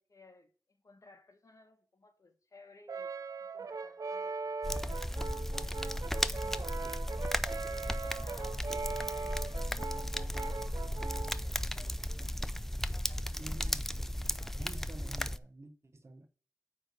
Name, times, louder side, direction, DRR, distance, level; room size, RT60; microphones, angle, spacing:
voice 1, 0.0-3.1 3.4-7.0 7.6-13.9 14.4-14.7, left 3 dB, 55° left, 1.3 m, -59 dB
Brass instrument, 2.9-11.4, right 4 dB, 65° right, 0.6 m, -40 dB
sound 1, 4.6-15.4, left 1 dB, 5° left, 0.4 m, -35 dB
voice 2, 13.4-14.1 14.6-16.3, right 2 dB, 45° right, 1.1 m, -49 dB
9.2 x 3.3 x 6.6 m
wide cardioid pair, 90°, 7 cm